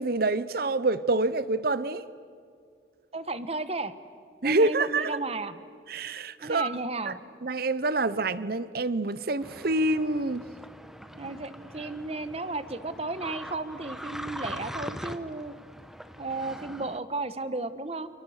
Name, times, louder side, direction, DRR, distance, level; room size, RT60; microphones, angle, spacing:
voice 1, 0.0-2.0 4.4-5.1 5.9-6.8 7.1-7.2 7.4-10.4, right 2 dB, 50° right, 0.8 m, -26 dB
voice 2, 3.1-3.9 4.4-5.6 6.4-7.2 11.2-15.6 16.2-18.1, right 2 dB, 30° right, 1.2 m, -34 dB
sound 1, 9.4-17.0, equal, ahead, 0.9 m, -42 dB
30.0 x 28.0 x 6.5 m
head